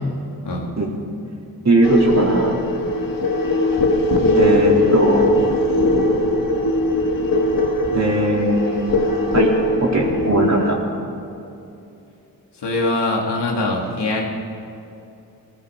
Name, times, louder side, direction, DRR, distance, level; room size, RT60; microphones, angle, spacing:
voice 1, 1.6-2.6 4.3-5.3 7.9-9.0 9.3-9.5 9.8-10.8, right 2 dB, 40° right, -2 dB, 3.6 m, -19 dB
sound 1, 1.8-10.8, left 1 dB, 55° left, 1.8 m, -19 dB
voice 2, 12.6-14.3, left 2 dB, 85° left, -1 dB, 2.6 m, -22 dB
18.0 x 14.5 x 5.1 m, 2.7 s
cardioid pair, 55°, 40 cm